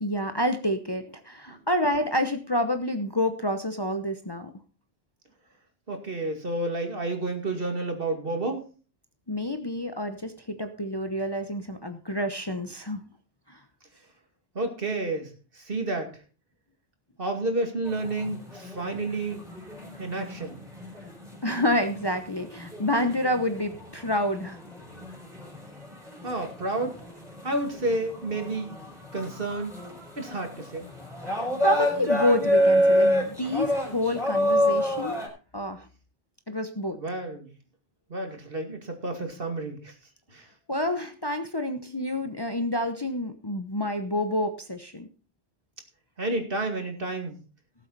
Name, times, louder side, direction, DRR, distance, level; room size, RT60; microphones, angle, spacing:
voice 1, 0.0-4.5 9.3-13.0 13.5-13.6 21.4-24.6 31.4-35.2 35.5-35.9 36.5-37.0 40.7-45.1, left 1 dB, 25° left, 7 dB, 0.9 m, -28 dB
voice 2, 5.9-8.6 14.5-16.1 17.2-19.4 20.0-20.6 26.2-27.0 27.4-28.7 29.1-29.8 30.2-30.9 37.0-37.5 38.1-39.9 40.3-40.4 46.2-47.4, right 2 dB, 55° right, 5 dB, 2.5 m, -30 dB
sound 1, 17.8-35.3, equal, 5° right, 5.2 m, -28 dB
18.0 x 7.8 x 4.1 m, 0.35 s
omnidirectional pair, 1.1 m